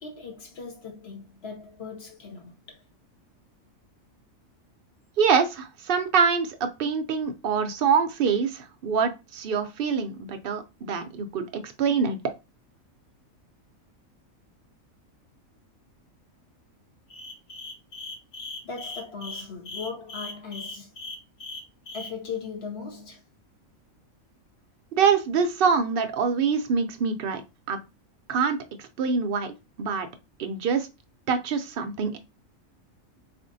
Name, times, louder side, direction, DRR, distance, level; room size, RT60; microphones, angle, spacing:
voice 1, 0.0-2.8 18.6-20.9 21.9-23.2, left 5 dB, 50° left, 1.1 m, -38 dB
voice 2, 5.2-11.4 11.8-12.2 25.0-27.4 27.7-27.8 28.3-28.6 29.0-29.5 29.8-30.1 30.4-30.9 31.3-32.2, right 6 dB, 70° right, 0.5 m, -24 dB
sound 1, 17.1-22.1, left 3 dB, 85° left, 1.4 m, -38 dB
4.2 x 2.5 x 2.6 m
omnidirectional pair, 1.4 m